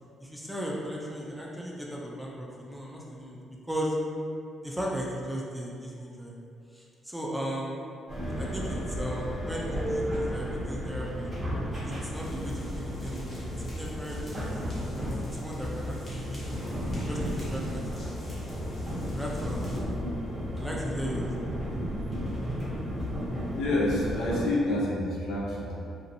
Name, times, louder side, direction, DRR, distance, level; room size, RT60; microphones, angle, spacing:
voice 1, 0.2-3.4 3.7-4.0 4.6-6.3 6.7-7.8 8.4-11.3 11.8-13.5 13.8-16.8 17.1-18.5 19.1-20.0 20.5-21.3, equal, 5° right, -3 dB, 0.4 m, -36 dB
sound 1, 8.1-24.4, equal, 30° right, 0.8 m, -33 dB
sound 2, 12.1-19.8, equal, 40° left, 0.7 m, -45 dB
voice 2, 23.5-25.8, left 1 dB, 80° left, -5 dB, 0.5 m, -28 dB
2.6 x 2.0 x 2.6 m, 2.5 s
cardioid pair, 90°, 0 cm